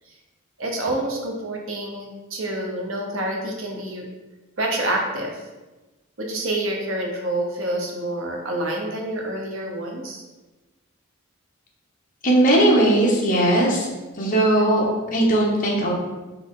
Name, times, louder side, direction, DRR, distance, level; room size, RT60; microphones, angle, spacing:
voice 1, 0.6-4.1 4.6-5.4 6.2-10.2, right 1 dB, 65° right, 0 dB, 0.8 m, -27 dB
voice 2, 12.2-13.9 14.2-15.9, right 1 dB, 40° left, -3 dB, 0.8 m, -18 dB
4.0 x 2.8 x 3.6 m, 1.2 s
head